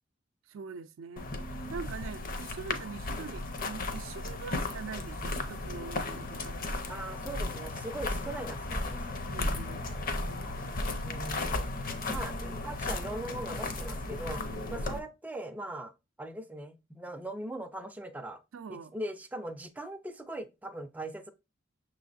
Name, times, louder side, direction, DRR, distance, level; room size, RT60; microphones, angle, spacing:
voice 1, 0.5-1.3 1.7-7.1 9.3-9.8 10.2-10.5 11.3-11.6 18.5-18.9, right 5 dB, 80° right, 0.4 m, -43 dB
sound 1, 1.2-15.0, left 2 dB, 45° left, 0.7 m, -35 dB
voice 2, 6.9-9.2 11.0-11.8 12.1-14.4 14.7-15.9 16.2-18.4 18.7-21.3, right 1 dB, 10° right, 0.4 m, -40 dB
6.3 x 3.1 x 2.5 m
head